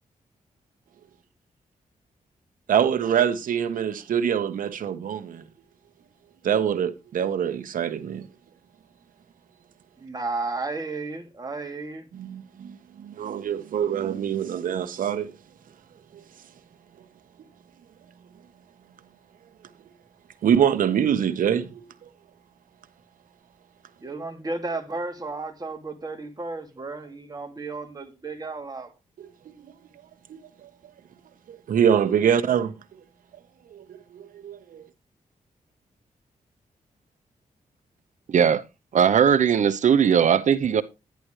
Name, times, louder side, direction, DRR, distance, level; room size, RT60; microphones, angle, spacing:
voice 1, 2.7-5.4 6.4-8.3 12.1-15.3 20.4-22.1 29.2-29.7 30.3-30.7 31.5-32.7 33.7-33.8 34.1-34.8, right 8 dB, 85° right, 1.2 m, -25 dB
voice 2, 10.0-12.0 24.0-28.9, right 3 dB, 30° right, 2.4 m, -33 dB
voice 3, 38.3-38.6 38.9-40.8, right 7 dB, 65° right, 0.8 m, -19 dB
11.5 x 10.5 x 3.2 m
cardioid pair, 100°, 14 cm